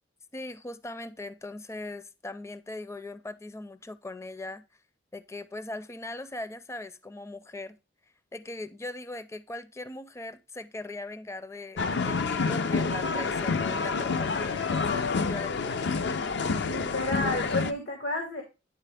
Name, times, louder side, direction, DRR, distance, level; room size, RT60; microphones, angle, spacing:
voice 1, 0.3-4.6 5.1-7.8 8.3-15.9, left 2 dB, 15° left, 0.5 m, -40 dB
sound 1, 11.8-17.7, left 4 dB, 65° left, 0.5 m, -28 dB
voice 2, 16.6-18.4, left 2 dB, 85° left, 2.1 m, -31 dB
10.0 x 4.0 x 3.3 m
head